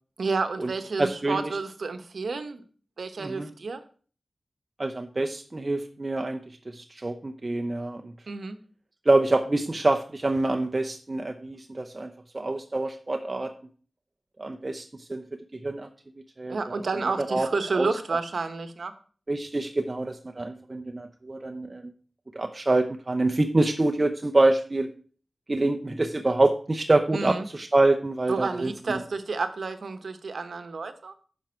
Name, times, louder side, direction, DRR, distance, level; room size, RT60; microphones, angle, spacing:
voice 1, 0.2-2.6 3.0-3.8 8.3-8.6 16.5-18.9 27.1-27.5 28.3-31.1, right 4 dB, 80° right, 9 dB, 1.0 m, -30 dB
voice 2, 1.0-1.6 3.2-3.5 4.8-8.1 9.0-13.5 14.4-15.9 16.4-16.8 17.2-17.5 17.8-17.9 19.3-21.9 22.3-24.9 25.5-28.7, right 2 dB, 35° right, 4 dB, 0.7 m, -26 dB
10.5 x 6.2 x 4.5 m, 0.42 s
wide cardioid pair, 85°, 0 cm